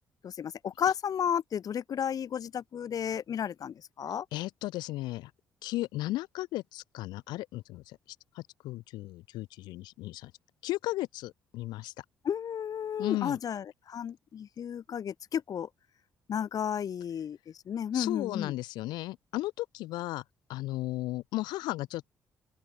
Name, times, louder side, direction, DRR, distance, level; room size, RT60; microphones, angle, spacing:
voice 1, 0.2-4.3 12.2-15.7 16.3-17.4 17.7-18.5, left 8 dB, 50° left, 3.5 m, -33 dB
voice 2, 4.3-5.3 5.6-8.0 8.3-10.3 10.6-12.0 13.0-13.4 17.9-20.2 20.5-22.1, left 17 dB, 70° left, 4.4 m, -35 dB
open air
figure-of-eight pair, 45°, 8 cm